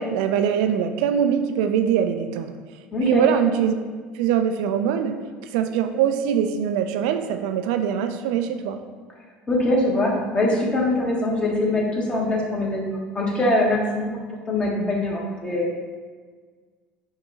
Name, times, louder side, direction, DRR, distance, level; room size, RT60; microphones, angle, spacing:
voice 1, 0.0-2.5 3.0-3.7 4.1-5.1 5.5-8.8, right 8 dB, 75° right, 7 dB, 0.4 m, -22 dB
voice 2, 2.9-3.2 9.5-14.1 14.5-15.7, left 1 dB, 25° left, -2 dB, 1.2 m, -23 dB
5.5 x 2.3 x 3.9 m, 1.5 s
supercardioid pair, 90°, 4 cm